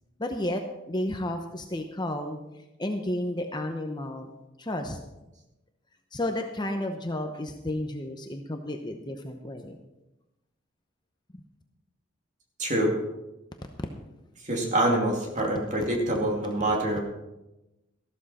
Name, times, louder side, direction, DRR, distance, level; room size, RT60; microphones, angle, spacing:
voice 1, 0.2-0.6 0.9-2.4 2.8-4.3 4.6-5.0 6.1-9.8 13.8-13.9, left 1 dB, 20° left, 4 dB, 0.8 m, -32 dB
voice 2, 12.6-12.9 14.4-17.0, right 1 dB, 35° right, 0 dB, 2.5 m, -25 dB
14.0 x 13.0 x 4.2 m, 0.98 s
head